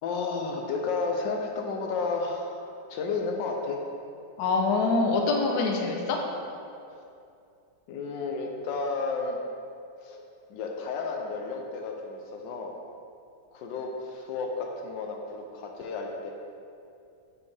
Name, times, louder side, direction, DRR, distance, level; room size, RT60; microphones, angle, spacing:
voice 1, 0.0-3.8 7.9-9.4 10.0-10.2 10.5-12.7 13.5-16.3, left 4 dB, 85° left, 1 dB, 1.4 m, -32 dB
voice 2, 4.4-6.2, left 3 dB, 70° left, 1 dB, 1.3 m, -25 dB
7.1 x 6.4 x 3.3 m, 2.5 s
omnidirectional pair, 1.9 m